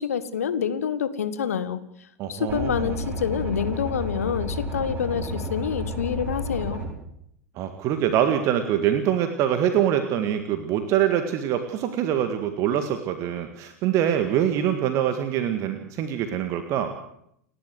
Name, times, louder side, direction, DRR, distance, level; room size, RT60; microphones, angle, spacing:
voice 1, 0.0-1.8 2.3-6.8, left 8 dB, 65° left, 13 dB, 1.7 m, -27 dB
voice 2, 2.2-2.9 7.6-16.9, right 10 dB, 40° right, 8 dB, 1.8 m, -24 dB
sound 1, 2.5-6.9, equal, 20° right, 6.9 m, -31 dB
29.5 x 11.5 x 7.9 m, 0.75 s
figure-of-eight pair, 90°, 8 cm